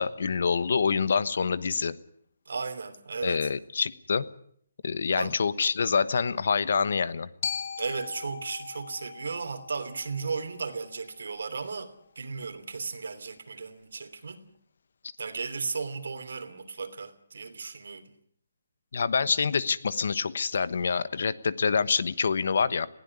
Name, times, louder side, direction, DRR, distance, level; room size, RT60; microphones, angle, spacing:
voice 1, 0.0-2.0 3.2-4.3 4.8-7.3 18.9-22.9, left 5 dB, 60° left, 1.2 m, -26 dB
voice 2, 2.5-3.5 5.2-5.3 7.8-14.4 15.2-18.1, right 4 dB, 75° right, 3.0 m, -35 dB
Glockenspiel, 7.4-11.5, left 7 dB, 35° left, 0.9 m, -39 dB
21.0 x 16.5 x 9.6 m
hypercardioid pair, 175°, 0 cm